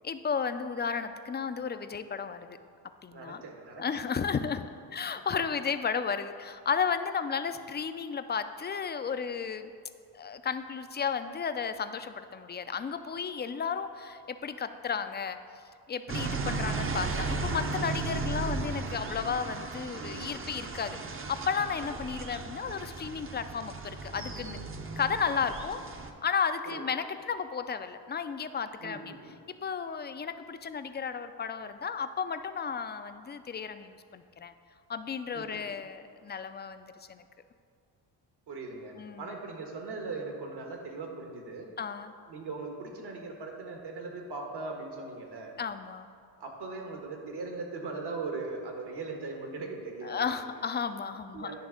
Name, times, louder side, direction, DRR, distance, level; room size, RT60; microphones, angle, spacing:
voice 1, 0.0-2.6 3.0-3.4 3.8-9.7 10.1-15.4 15.9-24.6 25.0-25.8 26.2-29.2 29.6-34.5 34.9-37.2 38.9-39.3 41.8-42.1 45.6-46.1 50.0-51.5, left 6 dB, 25° left, 10 dB, 0.3 m, -33 dB
voice 2, 3.1-3.8 7.5-7.6 20.0-20.3 26.6-26.8 28.8-29.4 35.3-35.6 38.5-41.7 42.3-45.5 46.4-50.2 51.3-51.6, right 3 dB, 65° right, 2 dB, 1.4 m, -39 dB
sound 1, 16.1-26.1, right 3 dB, 30° right, 0.7 m, -35 dB
10.5 x 3.5 x 6.3 m, 2.3 s
cardioid pair, 90°, 43 cm